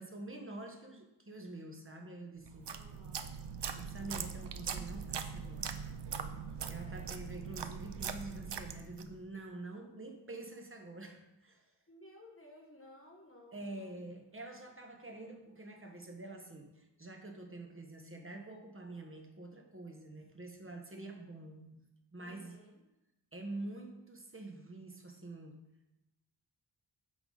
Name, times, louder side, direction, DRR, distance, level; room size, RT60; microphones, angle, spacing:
voice 1, 0.0-2.7 3.7-5.8 6.7-11.7 13.5-21.7 22.1-22.6 23.3-25.5, right 2 dB, 25° right, 3 dB, 1.3 m, -47 dB
sound 1, 2.5-9.2, right 6 dB, 60° right, 0.6 m, -41 dB
voice 2, 2.7-3.4 6.8-7.1 11.9-14.0 20.9-21.2 22.2-22.8, left 1 dB, 30° left, -1 dB, 1.4 m, -57 dB
8.5 x 6.0 x 4.0 m, 0.95 s
wide cardioid pair, 70°, 47 cm